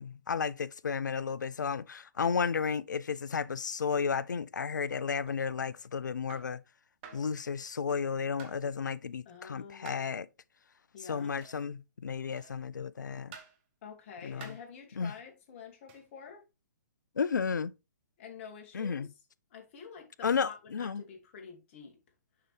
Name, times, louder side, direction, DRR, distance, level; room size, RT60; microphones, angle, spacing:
voice 1, 0.0-6.6 7.1-10.3 11.0-13.4 14.2-14.5 15.0-15.1 17.2-17.7 18.7-19.1 20.2-21.0, left 6 dB, 85° left, 0.5 m, -33 dB
sound 1, 5.3-5.5 6.3-6.6 7.0-7.3 8.4-8.7 9.9-10.1 11.4-11.6 12.4-12.7 13.3-13.6 14.4-14.7 15.9-16.1, right 7 dB, 40° right, 1.5 m, -51 dB
voice 2, 9.3-10.1 10.9-11.3 13.8-16.4 18.2-19.1 19.5-22.0, left 6 dB, 40° left, 2.2 m, -48 dB
6.7 x 5.6 x 3.3 m
hypercardioid pair, 135°, 10 cm